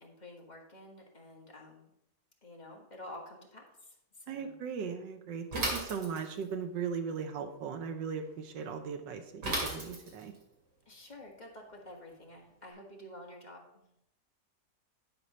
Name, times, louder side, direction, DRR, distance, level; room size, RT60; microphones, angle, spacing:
voice 1, 0.0-1.9 2.4-3.6 4.3-4.5 10.9-13.6, left 1 dB, 25° left, -1 dB, 1.6 m, -49 dB
voice 2, 4.3-10.3, right 6 dB, 90° right, 6 dB, 1.5 m, -38 dB
Bicycle / Mechanisms, 5.5-6.5 9.4-10.4, right 1 dB, 65° right, 3.0 m, -34 dB
11.0 x 4.5 x 5.4 m, 0.81 s
omnidirectional pair, 1.9 m